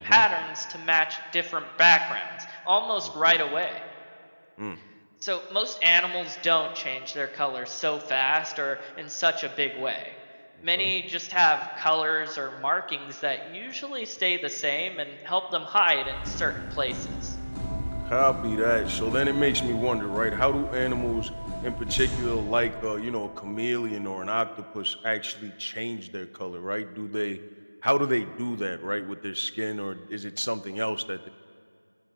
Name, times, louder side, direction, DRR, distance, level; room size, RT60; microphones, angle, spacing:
voice 1, 0.0-3.8 5.2-10.1 10.6-17.4, equal, 80° left, 10 dB, 0.9 m, -26 dB
sound 1, 16.0-22.3, equal, 5° left, 3.0 m, -34 dB
Bowed string instrument, 16.1-21.6, equal, 20° left, 5.1 m, -44 dB
Wind instrument woodwind instrument, 17.5-24.8, equal, 30° right, 3.2 m, -42 dB
voice 2, 18.0-21.3 21.6-27.4 27.8-31.3, equal, 70° right, 15 dB, 0.5 m, -28 dB
27.0 x 12.0 x 4.2 m, 2.5 s
figure-of-eight pair, 180°, 0 cm